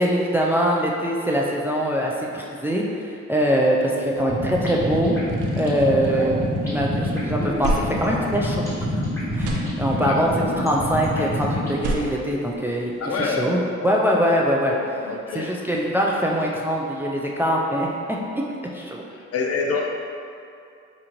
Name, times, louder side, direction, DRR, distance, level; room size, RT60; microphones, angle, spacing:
voice 1, 0.0-2.9 3.3-5.2 5.6-6.3 6.6-8.7 9.4-10.3 10.6-12.9 13.2-13.6 13.8-14.7 15.3-17.9 18.3-18.4 18.7-19.0, equal, 10° right, -2 dB, 0.3 m, -22 dB
sound 1, 4.2-11.8, left 1 dB, 10° left, 1.3 m, -27 dB
sound 2, 5.1-6.8 7.1-9.0 9.2-10.3 11.6-13.2, right 1 dB, 85° right, 0.6 m, -32 dB
voice 2, 9.9-10.2 13.0-14.1 14.5-15.6 19.1-19.9, left 4 dB, 55° left, 2 dB, 0.5 m, -28 dB
5.0 x 2.5 x 2.9 m, 2.5 s
cardioid pair, 90°, 30 cm